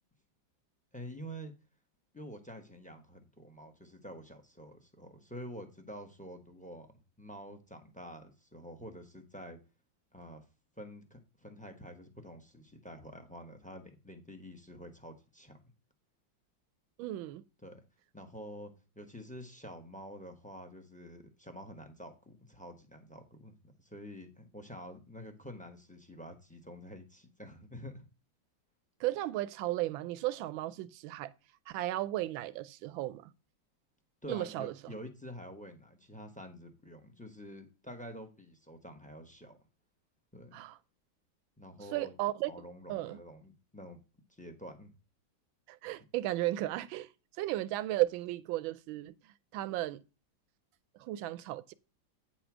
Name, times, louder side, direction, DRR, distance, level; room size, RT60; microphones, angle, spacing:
voice 1, 0.9-1.5 2.1-6.9 7.2-9.6 10.1-10.4 10.8-15.6 17.6-17.8 18.1-28.1 34.2-39.6 40.3-40.6 41.6-42.1 42.5-44.0 44.3-44.9, equal, 10° left, 0.5 m, -48 dB
voice 2, 17.0-17.4 29.0-31.3 31.7-33.3 34.3-34.9 40.5-40.8 41.9-42.5 42.9-43.2 45.7-47.1 47.4-50.0 51.0-51.7, right 16 dB, 90° right, 1.4 m, -35 dB
9.0 x 4.3 x 5.9 m
omnidirectional pair, 2.1 m